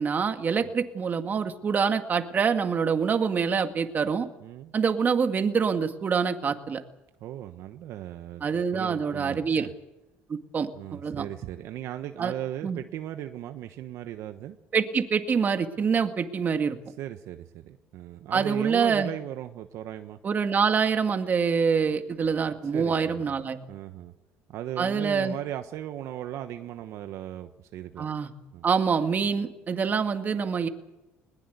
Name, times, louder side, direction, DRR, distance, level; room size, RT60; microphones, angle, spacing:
voice 1, 0.0-4.3 4.7-6.8 8.4-9.7 10.3-11.3 12.2-12.3 12.6-12.8 14.7-16.8 18.3-19.1 20.2-23.6 24.8-25.3 28.0-28.3 28.6-30.7, right 6 dB, 35° right, 7 dB, 2.1 m, -25 dB
voice 2, 4.4-4.7 7.2-9.7 10.7-14.6 17.0-20.2 22.7-23.4 23.7-24.1 24.5-28.1 28.5-28.7, right 12 dB, 65° right, 8 dB, 1.2 m, -37 dB
21.0 x 20.0 x 8.3 m, 0.95 s
cardioid pair, 110°, 5 cm